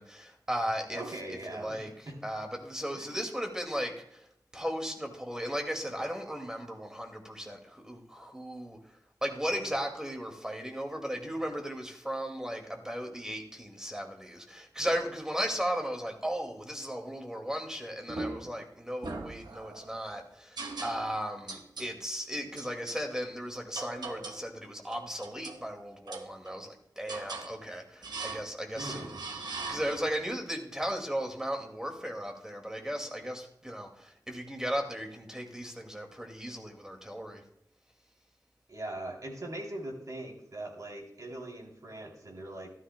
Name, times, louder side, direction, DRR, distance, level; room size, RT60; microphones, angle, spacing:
voice 1, 0.0-4.3 4.5-29.1 29.5-37.4, equal, 10° right, 3 dB, 2.1 m, -36 dB
voice 2, 0.9-2.2 2.9-3.1 28.7-29.2 38.7-42.7, right 1 dB, 60° right, 0 dB, 3.2 m, -41 dB
sound 1, 18.1-18.6 19.0-19.9 20.6-21.2 21.5-21.9 22.6-23.0 23.7-24.5 24.9-25.6 26.1-26.7 27.1-27.5 28.0-28.5 28.8-30.2, right 3 dB, 85° right, 1.1 m, -40 dB
14.5 x 12.5 x 2.2 m, 0.77 s
wide cardioid pair, 85°, 7 cm